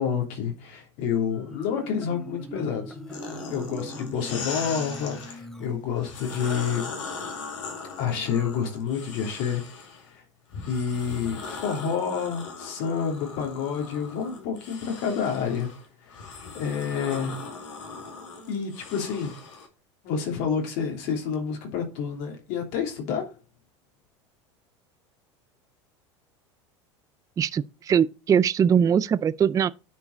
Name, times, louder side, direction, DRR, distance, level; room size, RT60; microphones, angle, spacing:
voice 1, 0.0-3.0 3.5-7.0 8.0-9.6 10.0-10.2 10.7-15.7 16.0-16.1 16.5-17.3 18.5-19.3 20.0-23.3, left 7 dB, 60° left, 3.1 m, -29 dB
Marimba xylophone, 1.3-6.4, equal, 5° left, 1.3 m, -41 dB
sound 1, 3.1-5.4 6.0-10.0 10.5-19.7, left 4 dB, 80° left, 2.3 m, -39 dB
voice 2, 27.4-29.7, right 8 dB, 20° right, 0.3 m, -21 dB
9.7 x 4.7 x 4.0 m
hypercardioid pair, 85°, 16 cm